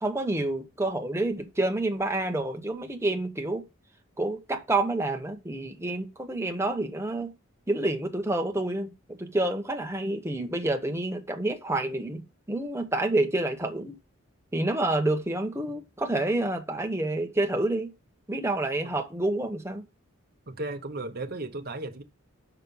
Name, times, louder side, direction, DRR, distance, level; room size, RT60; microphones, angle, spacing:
voice 1, 0.0-3.6 4.2-7.3 7.7-12.2 12.5-14.0 14.5-17.9 18.3-19.8, right 2 dB, 10° right, 1.1 m, -28 dB
voice 2, 20.5-22.0, right 2 dB, 45° right, 1.0 m, -35 dB
6.5 x 6.0 x 5.5 m
head